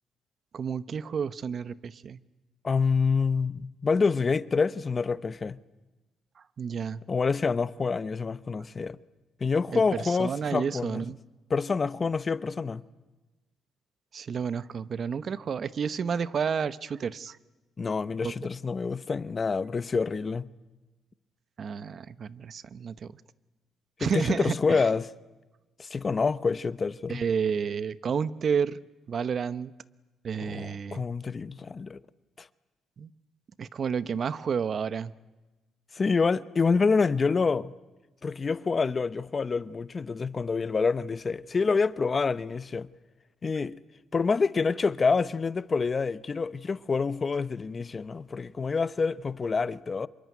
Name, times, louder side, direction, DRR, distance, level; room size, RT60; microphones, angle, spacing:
voice 1, 0.5-2.2 6.6-7.0 9.7-11.2 14.1-17.4 18.2-18.3 21.6-23.1 24.0-24.8 27.1-28.8 29.1-29.7 30.2-31.0 33.0-33.1 33.6-35.1, right 6 dB, 50° right, 1.0 m, -30 dB
voice 2, 2.6-5.6 7.1-9.0 9.4-11.0 11.5-12.8 17.8-20.4 24.0-25.1 25.8-27.2 30.4-32.0 32.4-32.5 35.9-37.7 38.2-42.9 43.4-43.8 44.1-50.1, left 4 dB, 35° left, 0.9 m, -27 dB
26.5 x 23.5 x 9.7 m
cardioid pair, 90°, 0 cm